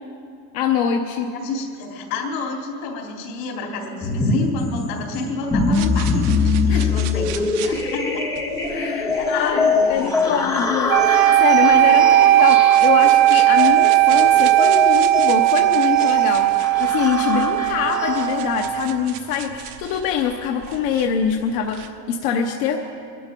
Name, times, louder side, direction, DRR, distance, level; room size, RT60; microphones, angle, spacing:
voice 1, 0.5-1.3 6.6-6.9 8.7-22.8, left 7 dB, 45° left, 2 dB, 0.9 m, -24 dB
voice 2, 1.2-8.2 9.1-10.4 12.0-12.1, left 3 dB, 75° left, 0 dB, 3.5 m, -30 dB
sound 1, 4.0-18.7, left 4 dB, 5° left, 0.5 m, -24 dB
sound 2, 5.7-21.9, right 10 dB, 60° right, 1.0 m, -39 dB
sound 3, 10.9-19.0, right 15 dB, 90° right, 0.7 m, -16 dB
22.0 x 12.0 x 5.3 m, 2.6 s
cardioid pair, 175°, 50 cm